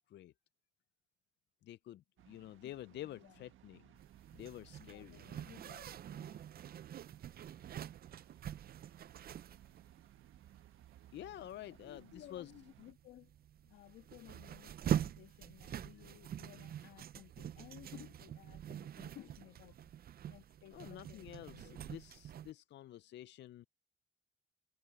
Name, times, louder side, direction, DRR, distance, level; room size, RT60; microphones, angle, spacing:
voice 1, 1.6-3.9 4.3-5.2 11.1-12.5 20.7-23.7, left 13 dB, 60° left, 0.4 m, -49 dB
sound 1, 2.2-12.9, right 13 dB, 80° right, 1.4 m, -62 dB
Zipper (clothing), 4.0-22.5, right 10 dB, 50° right, 0.5 m, -45 dB
voice 2, 4.8-6.5 11.8-13.3 13.6-19.9 20.3-21.8, left 14 dB, 90° left, 2.1 m, -57 dB
cardioid pair, 90°, 20 cm